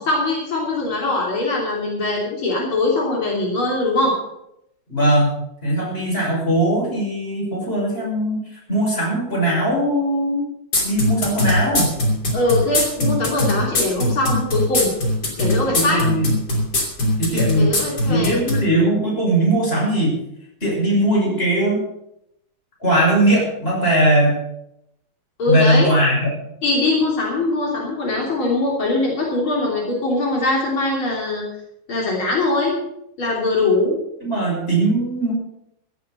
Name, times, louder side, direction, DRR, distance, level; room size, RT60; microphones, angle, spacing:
voice 1, 0.0-4.1 12.3-14.9 15.4-16.0 17.6-18.4 25.4-25.9 26.6-31.4 31.9-32.8 33.2-34.0, left 2 dB, 80° left, -2 dB, 4.1 m, -21 dB
voice 2, 4.9-5.3 5.6-8.4 8.7-10.5 10.8-11.9 15.6-16.3 17.2-17.7 18.1-20.2 20.6-21.8 22.8-24.4 25.5-26.3 34.2-35.3, right 1 dB, 25° left, -3 dB, 6.6 m, -19 dB
sound 1, 10.7-18.6, left 1 dB, 50° left, 3.6 m, -20 dB
16.0 x 8.5 x 6.8 m, 0.80 s
omnidirectional pair, 2.2 m